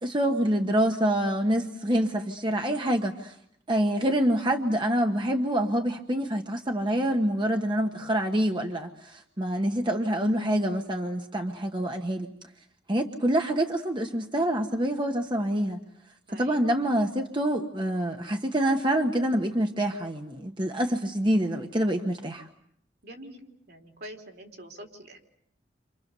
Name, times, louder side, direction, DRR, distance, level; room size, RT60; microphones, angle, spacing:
voice 1, 0.0-3.3 3.7-12.3 12.9-15.8 16.3-22.5, right 1 dB, 25° right, 4 dB, 1.3 m, -26 dB
voice 2, 16.3-16.7 23.0-25.2, right 1 dB, 65° right, 3 dB, 4.0 m, -45 dB
30.0 x 27.0 x 6.8 m, 0.68 s
head